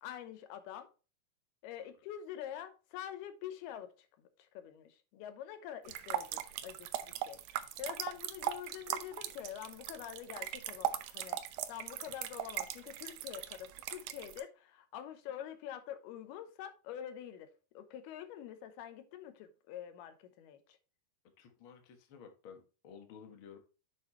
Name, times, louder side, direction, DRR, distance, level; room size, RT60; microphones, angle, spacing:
voice 1, 0.0-0.9 1.6-11.4 11.7-20.8, left 10 dB, 85° left, 2.9 m, -46 dB
sound 1, 5.9-14.4, right 12 dB, 90° right, 1.7 m, -39 dB
voice 2, 21.4-23.6, left 7 dB, 60° left, 1.4 m, -53 dB
7.7 x 6.7 x 3.1 m
omnidirectional pair, 4.5 m